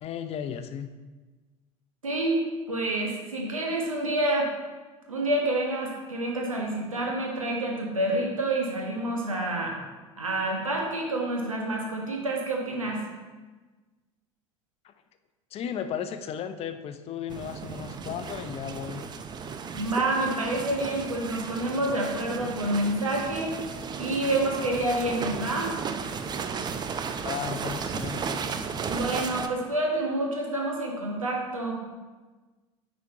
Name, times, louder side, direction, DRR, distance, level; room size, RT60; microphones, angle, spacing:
voice 1, 0.0-0.9 14.8-14.9 15.5-19.0 27.2-28.4, left 8 dB, 35° left, 9 dB, 0.5 m, -35 dB
voice 2, 2.0-2.4 2.7-4.5 5.1-9.8 10.2-13.0 19.7-23.6 24.0-25.7 28.9-31.8, right 1 dB, 85° right, -1 dB, 1.3 m, -28 dB
sound 1, 17.3-29.5, right 6 dB, 25° right, 0.5 m, -35 dB
9.2 x 5.1 x 2.9 m, 1.3 s
figure-of-eight pair, 70°, 17 cm